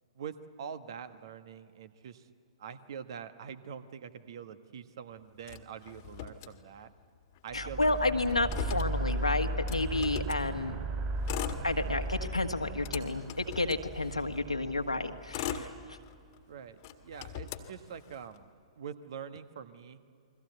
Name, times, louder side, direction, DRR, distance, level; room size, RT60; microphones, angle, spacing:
voice 1, 0.1-2.3 2.6-6.9 7.4-8.0 16.5-18.5 18.8-20.0, right 7 dB, 50° right, 11 dB, 1.4 m, -44 dB
Motor vehicle (road), 5.4-7.1 7.4-7.5 7.7-10.5 11.1-12.2 12.6-14.4 15.0-16.4 16.8-18.4, left 10 dB, 40° left, 1.7 m, -41 dB
voice 2, 7.5-10.8 11.6-16.0, left 2 dB, 85° left, 6 dB, 1.7 m, -31 dB
sound 1, 7.5-15.9, right 1 dB, 25° right, 4.0 m, -37 dB
29.0 x 23.0 x 8.0 m, 2.4 s
figure-of-eight pair, 115°, 3 cm